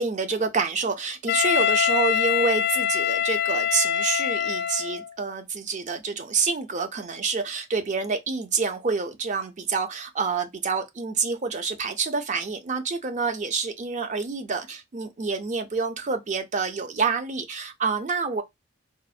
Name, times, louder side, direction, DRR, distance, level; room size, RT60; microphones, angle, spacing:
voice 1, 0.0-18.4, right 4 dB, 40° right, 0.5 m, -27 dB
Wind instrument woodwind instrument, 1.3-5.1, left 9 dB, 55° left, 0.3 m, -24 dB
3.7 x 2.1 x 2.4 m
head